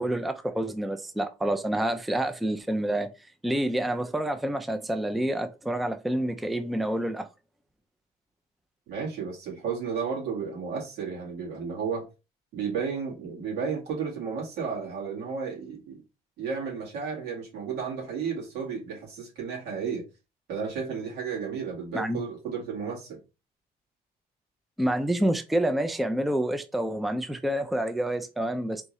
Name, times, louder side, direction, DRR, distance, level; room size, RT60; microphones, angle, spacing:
voice 1, 0.0-3.1 3.4-7.3 21.9-22.2 24.8-28.8, right 1 dB, ahead, 0.4 m, -28 dB
voice 2, 8.9-12.1 12.5-16.0 16.4-20.0 20.5-23.2, right 6 dB, 85° right, 2.0 m, -33 dB
3.5 x 2.6 x 3.1 m
cardioid pair, 110°, 17 cm